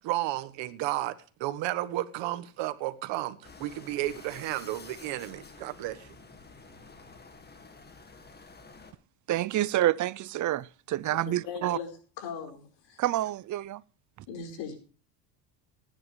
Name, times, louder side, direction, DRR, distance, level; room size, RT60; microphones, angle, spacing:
voice 1, 0.0-6.1, right 15 dB, 70° right, 1.4 m, -33 dB
sound 1, 3.4-8.9, left 3 dB, 20° left, 2.0 m, -50 dB
voice 2, 9.3-11.8 13.0-13.8, right 14 dB, 40° right, 0.6 m, -28 dB
voice 3, 11.1-11.9 12.2-13.0 14.3-14.8, left 6 dB, 70° left, 4.9 m, -39 dB
19.0 x 10.0 x 3.3 m
supercardioid pair, 100°, 46 cm